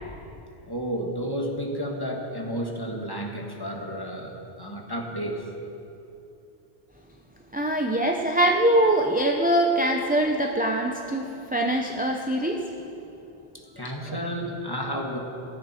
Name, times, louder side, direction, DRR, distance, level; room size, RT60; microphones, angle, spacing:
voice 1, 0.7-5.5 13.5-15.2, equal, 20° left, 0 dB, 1.8 m, -32 dB
voice 2, 7.5-12.6 14.1-14.2, right 1 dB, 10° right, 1 dB, 0.7 m, -23 dB
16.0 x 16.0 x 4.5 m, 2.8 s
omnidirectional pair, 1.1 m